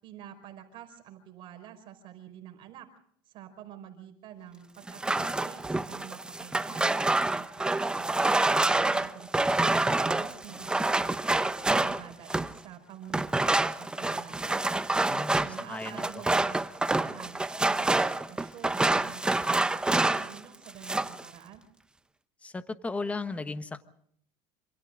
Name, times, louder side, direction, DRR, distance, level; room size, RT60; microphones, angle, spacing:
voice 1, 0.0-2.9 3.2-8.2 8.7-9.8 10.1-14.6 15.4-21.6, right 10 dB, 50° right, 6 dB, 5.1 m, -48 dB
sound 1, 4.9-12.6 13.1-20.4 20.7-21.2, right 2 dB, 10° right, 0.8 m, -27 dB
voice 2, 15.1-16.2 22.4-23.8, left 3 dB, 10° left, 11 dB, 1.2 m, -36 dB
27.0 x 27.0 x 3.8 m, 0.64 s
cardioid pair, 135°, 11 cm